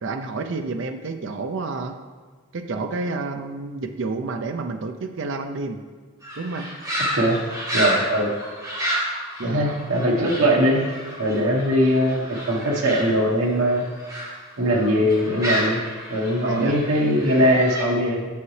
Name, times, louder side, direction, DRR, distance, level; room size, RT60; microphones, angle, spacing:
voice 1, 0.0-2.0 2.5-5.8 6.4-6.7 9.4-9.6 16.4-16.8, right 3 dB, 60° right, 6 dB, 0.5 m, -29 dB
sound 1, 6.2-14.3 14.7-17.8, equal, 15° right, 2.0 m, -30 dB
voice 2, 7.7-8.3 9.4-10.8 11.2-13.8 14.6-15.8 16.1-18.3, equal, 85° right, -1 dB, 1.2 m, -21 dB
8.4 x 6.4 x 3.2 m, 1.5 s
head